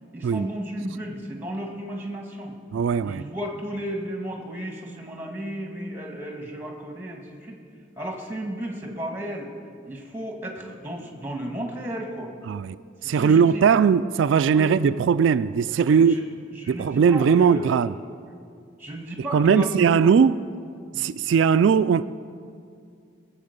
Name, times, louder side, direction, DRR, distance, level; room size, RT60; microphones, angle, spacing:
voice 1, 0.1-2.6 3.0-7.6 8.0-9.5 9.9-12.3 13.0-13.6 14.5-14.8 15.8-16.2 16.5-17.7 18.3-18.4 18.8-20.2 20.9-21.1, equal, 10° right, 1.7 m, -34 dB
voice 2, 2.7-3.2 12.5-12.8 13.0-16.1 16.7-18.0 19.3-20.4 21.0-22.0, right 6 dB, 80° right, 0.3 m, -19 dB
20.5 x 7.8 x 6.6 m
head